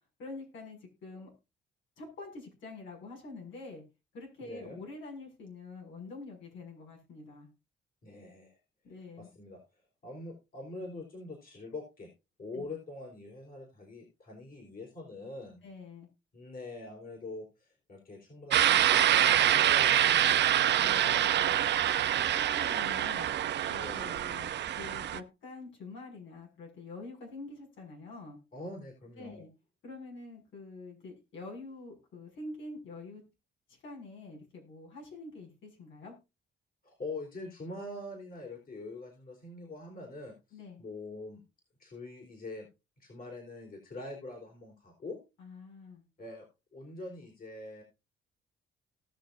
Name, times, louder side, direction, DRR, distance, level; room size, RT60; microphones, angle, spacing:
voice 1, 0.2-1.3 2.0-3.8 4.1-7.5 8.8-9.3 12.5-12.7 15.6-16.1 20.8-21.5 22.3-23.3 23.7-28.4 29.2-29.5 29.8-33.2 33.7-36.1 40.5-40.8 45.4-46.0, left 3 dB, 75° left, 0 dB, 6.3 m, -46 dB
voice 2, 4.4-4.8 8.0-8.6 8.9-9.6 10.0-12.1 12.4-15.6 16.3-19.0 19.5-20.4 20.9-21.6 23.8-24.1 28.5-29.4 36.8-41.4 41.8-42.7 43.0-45.2 46.2-46.5 46.7-47.8, left 2 dB, 45° left, 0 dB, 4.2 m, -44 dB
sound 1, 18.5-25.2, right 11 dB, 60° right, 0.7 m, -26 dB
18.5 x 6.5 x 2.6 m, 0.27 s
cardioid pair, 90°, 20 cm